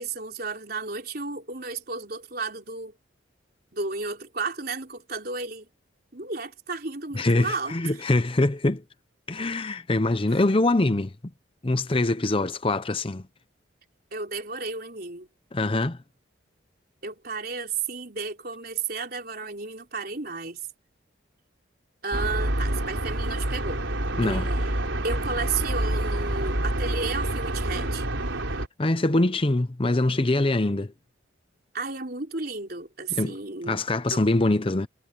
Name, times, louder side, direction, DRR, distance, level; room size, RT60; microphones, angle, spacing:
voice 1, 0.0-3.0 3.7-5.7 6.1-8.0 14.1-15.3 17.0-20.6 22.0-23.9 24.2-24.7 25.0-28.1 31.7-33.8 34.1-34.2, right 4 dB, 50° right, 4.2 m, -33 dB
voice 2, 7.1-8.8 9.3-11.1 11.6-13.2 15.5-16.0 24.2-24.5 28.8-30.9 33.1-33.4 33.6-34.9, left 2 dB, 25° left, 0.7 m, -23 dB
sound 1, 22.1-28.7, right 1 dB, 85° right, 4.1 m, -27 dB
head